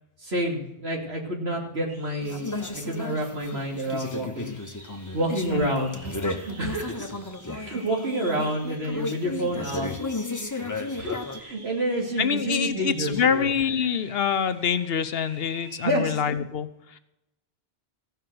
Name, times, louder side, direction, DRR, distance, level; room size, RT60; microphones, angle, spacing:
voice 1, 0.2-4.5 5.1-7.1 7.5-9.9 10.9-13.5 15.8-16.2, right 1 dB, 85° right, 0 dB, 2.8 m, -29 dB
sound 1, 1.9-16.1, right 1 dB, 70° right, 3.5 m, -49 dB
sound 2, 2.2-11.4, left 2 dB, 20° left, 0.9 m, -34 dB
voice 2, 12.2-17.0, left 7 dB, 70° left, 11 dB, 1.0 m, -25 dB
15.5 x 5.7 x 7.7 m, 0.90 s
omnidirectional pair, 1.0 m